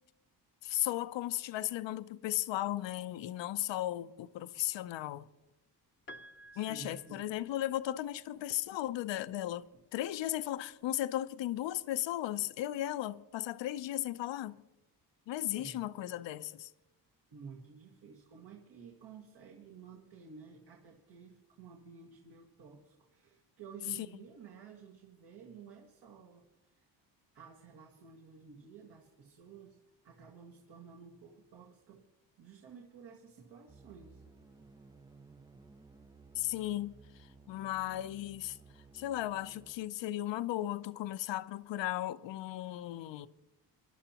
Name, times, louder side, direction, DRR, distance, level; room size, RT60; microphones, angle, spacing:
voice 1, 0.6-5.3 6.6-9.7 9.9-14.6 15.3-16.7 36.3-38.6 38.9-43.3, left 14 dB, 75° left, 0.7 m, -36 dB
Piano, 6.1-8.1 9.4-9.5, equal, 25° left, 0.7 m, -54 dB
voice 2, 6.5-7.2 15.6-15.8 17.3-26.8 27.3-29.8 30.0-32.0 32.4-34.2, right 6 dB, 65° right, 1.9 m, -53 dB
sound 1, 33.7-39.7, right 4 dB, 10° right, 0.3 m, -57 dB
25.0 x 11.5 x 2.9 m
cardioid pair, 135°, 44 cm